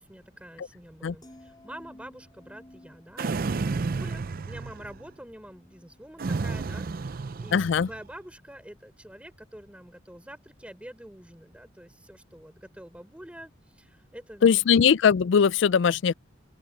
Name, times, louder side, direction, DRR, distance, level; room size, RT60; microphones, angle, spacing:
voice 1, 0.0-13.5 13.8-14.6, right 1 dB, 5° right, 3.6 m, -46 dB
sound 1, 1.2-7.5 7.8-8.2, left 1 dB, 20° left, 4.5 m, -55 dB
sound 2, 3.2-5.1 6.2-8.0, right 4 dB, 45° right, 0.5 m, -31 dB
voice 2, 7.5-7.9 14.4-16.1, left 7 dB, 65° left, 0.4 m, -20 dB
open air
head